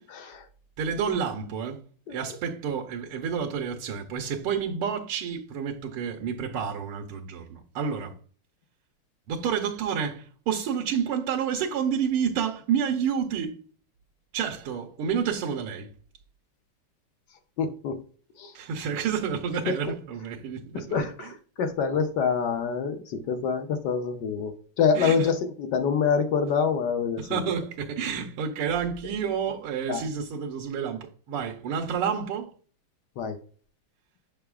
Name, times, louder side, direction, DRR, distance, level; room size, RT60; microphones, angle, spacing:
voice 1, 0.1-0.5 2.1-2.2 17.6-18.0 18.4-18.5 20.7-27.4 29.9-30.0 33.2-33.4, left 6 dB, 65° left, 1.1 m, -26 dB
voice 2, 0.8-1.8 2.1-8.2 9.3-13.6 14.3-15.9 18.5-21.4 22.5-22.6 24.9-25.3 27.2-32.5, right 7 dB, 90° right, 1.7 m, -29 dB
6.7 x 6.7 x 2.3 m
omnidirectional pair, 2.4 m